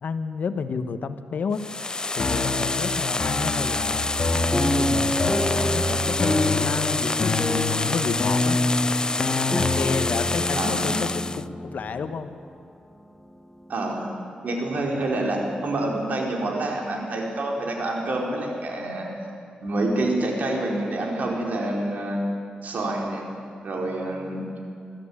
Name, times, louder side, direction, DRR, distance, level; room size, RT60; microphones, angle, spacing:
voice 1, 0.0-4.1 4.5-8.6 9.5-12.4, left 5 dB, 70° left, 10 dB, 1.1 m, -31 dB
sound 1, 1.5-11.4, left 3 dB, 25° left, 0.4 m, -27 dB
sound 2, 2.2-10.2, left 2 dB, 45° left, 2.0 m, -27 dB
sound 3, 4.5-12.6 13.2-13.3 13.6-13.9, left 1 dB, 10° left, 1.1 m, -29 dB
voice 2, 10.5-11.0 13.7-14.1 14.4-19.1 19.6-22.2 22.6-23.3 23.6-24.4, right 2 dB, 65° right, -1 dB, 4.6 m, -27 dB
23.0 x 13.5 x 8.7 m, 2.3 s
cardioid pair, 75°, 3 cm